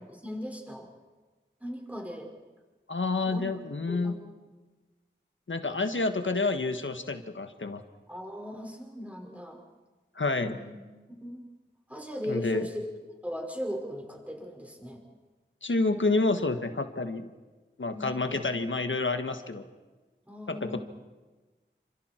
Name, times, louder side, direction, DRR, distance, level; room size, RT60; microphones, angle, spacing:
voice 1, 0.1-0.9 1.6-2.3 3.2-3.5 3.9-4.3 8.1-9.6 10.5-10.8 11.2-11.4 11.9-12.9 13.2-15.0 17.9-18.6 20.3-20.8, equal, 5° right, 1 dB, 5.3 m, -38 dB
voice 2, 2.9-4.1 5.5-7.8 10.1-10.6 12.3-12.7 15.6-17.3 17.8-19.6 20.5-20.8, left 3 dB, 75° left, 7 dB, 1.6 m, -29 dB
29.0 x 26.5 x 4.5 m, 1.3 s
wide cardioid pair, 60°, 20 cm